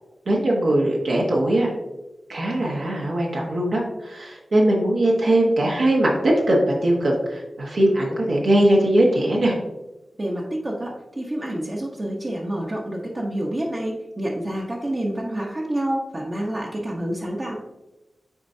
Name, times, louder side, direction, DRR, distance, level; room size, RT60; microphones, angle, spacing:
voice 1, 0.3-1.7 2.3-9.5, right 1 dB, 75° right, -2 dB, 1.2 m, -20 dB
voice 2, 10.2-17.6, right 1 dB, 35° right, -4 dB, 0.9 m, -28 dB
8.5 x 4.3 x 2.7 m, 1.0 s
wide cardioid pair, 95°, 0 cm